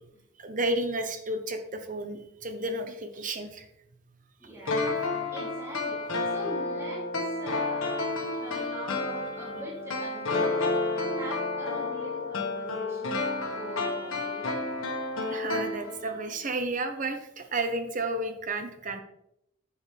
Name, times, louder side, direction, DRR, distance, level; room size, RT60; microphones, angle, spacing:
voice 1, 0.4-3.7 15.3-19.0, right 2 dB, 40° right, 7 dB, 0.9 m, -32 dB
voice 2, 4.4-7.9 8.4-10.7 11.1-13.2 13.5-14.5, equal, 15° right, -5 dB, 2.8 m, -42 dB
sound 1, 4.7-16.3 16.6-16.7, left 3 dB, 90° left, 1.7 m, -31 dB
10.0 x 7.5 x 3.4 m, 0.79 s
head